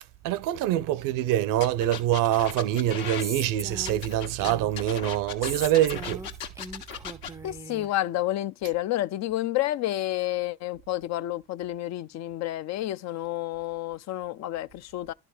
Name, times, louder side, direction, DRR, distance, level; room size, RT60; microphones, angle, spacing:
voice 1, 0.2-6.3, right 12 dB, 65° right, 0.7 m, -25 dB
sound 1, 1.6-3.2 3.8-7.3, left 9 dB, 70° left, 1.5 m, -37 dB
Female speech woman speaking, 3.2-4.9 5.4-7.9, right 2 dB, 10° right, 0.4 m, -39 dB
voice 2, 7.4-15.1, left 15 dB, 50° left, 0.4 m, -30 dB
11.0 x 3.7 x 4.8 m
supercardioid pair, 75°, 35 cm